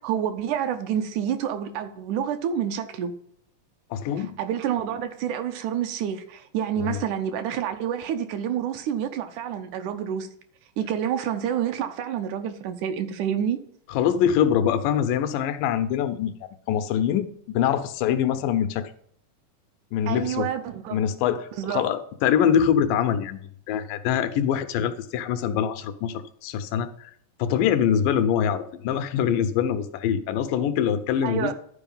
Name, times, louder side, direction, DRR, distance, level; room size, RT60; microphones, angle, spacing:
voice 1, 0.0-3.1 4.4-10.3 10.8-13.6 20.1-21.0 21.5-21.9 31.2-31.5, right 9 dB, 75° right, 2.0 m, -28 dB
voice 2, 3.9-4.4 6.8-7.0 13.9-16.3 16.7-17.3 17.5-18.9 19.9-20.5 20.9-23.4 23.7-27.1 27.4-31.5, left 9 dB, 90° left, 2.4 m, -24 dB
12.0 x 4.9 x 5.5 m
omnidirectional pair, 3.8 m